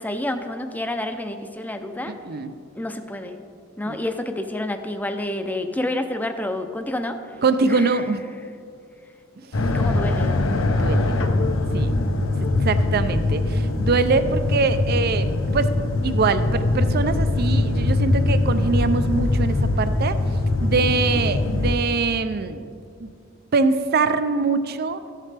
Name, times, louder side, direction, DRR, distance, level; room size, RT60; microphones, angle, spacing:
voice 1, 0.0-2.1 2.8-3.4 3.8-7.2 7.7-8.0 9.7-10.3, left 1 dB, 10° left, 7 dB, 0.5 m, -28 dB
voice 2, 7.4-8.2 10.8-11.2 11.7-11.9 12.6-15.7 16.0-20.1 20.6-22.6 23.0-23.1 23.5-25.0, right 4 dB, 50° right, 11 dB, 0.5 m, -23 dB
sound 1, 9.5-21.7, left 2 dB, 80° left, 0.7 m, -22 dB
14.0 x 7.4 x 3.4 m, 2.3 s
head